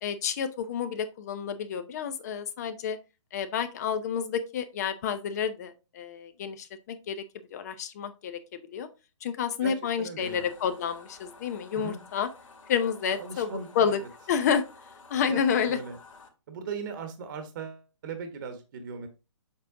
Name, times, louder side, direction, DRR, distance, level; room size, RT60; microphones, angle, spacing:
voice 1, 0.0-3.0 3.3-7.2 7.5-8.9 9.2-12.3 12.7-14.0 14.3-14.6 15.1-15.8, left 7 dB, 30° left, 11 dB, 0.6 m, -29 dB
voice 2, 9.6-10.5 11.7-12.0 13.0-14.1 15.3-16.0 16.5-19.1, right 5 dB, 40° right, 7 dB, 1.2 m, -39 dB
sound 1, 10.2-16.3, left 4 dB, 85° left, 2.1 m, -52 dB
7.5 x 4.4 x 3.7 m, 0.29 s
hypercardioid pair, 155°, 16 cm